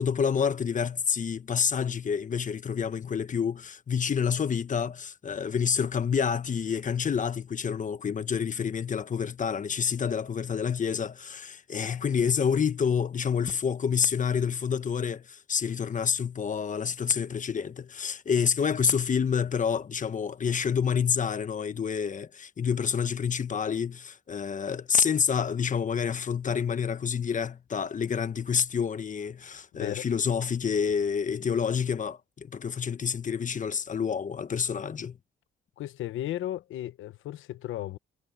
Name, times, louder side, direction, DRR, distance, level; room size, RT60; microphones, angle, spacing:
voice 1, 0.0-35.2, left 7 dB, 40° left, 1.2 m, -28 dB
voice 2, 35.8-38.0, left 13 dB, 80° left, 1.1 m, -35 dB
cardioid pair, 90°, 20 cm